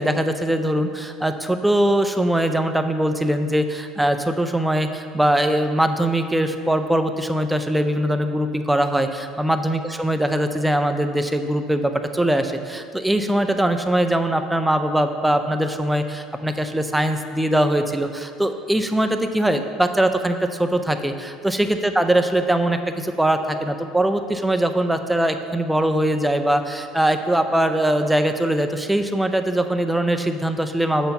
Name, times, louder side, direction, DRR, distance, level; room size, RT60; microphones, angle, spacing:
voice 1, 0.0-31.1, right 1 dB, 5° right, 7 dB, 0.4 m, -21 dB
6.9 x 4.4 x 5.3 m, 2.2 s
supercardioid pair, 110°, 0 cm